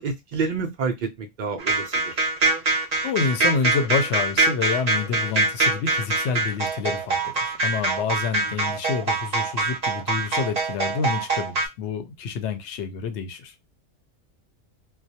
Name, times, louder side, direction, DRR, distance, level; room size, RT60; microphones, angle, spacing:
voice 1, 0.0-2.2, right 4 dB, 85° right, 0.4 m, -29 dB
sound 1, 1.6-11.7, right 3 dB, 40° right, 0.6 m, -24 dB
voice 2, 3.0-13.5, left 6 dB, 65° left, 0.8 m, -28 dB
2.3 x 2.1 x 2.7 m
omnidirectional pair, 1.3 m